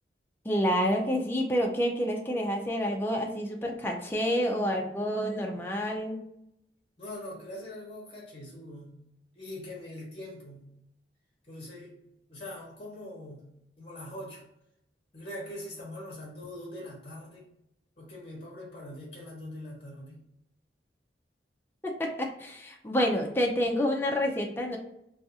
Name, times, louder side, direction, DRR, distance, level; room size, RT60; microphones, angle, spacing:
voice 1, 0.4-6.2 21.8-24.8, equal, 10° left, 1 dB, 0.3 m, -28 dB
voice 2, 7.0-9.0 9.3-10.6 11.5-11.9 12.3-13.5 13.8-14.4 15.1-17.5 18.0-20.2, left 1 dB, 30° left, -3 dB, 0.8 m, -42 dB
2.4 x 2.3 x 2.6 m, 0.79 s
head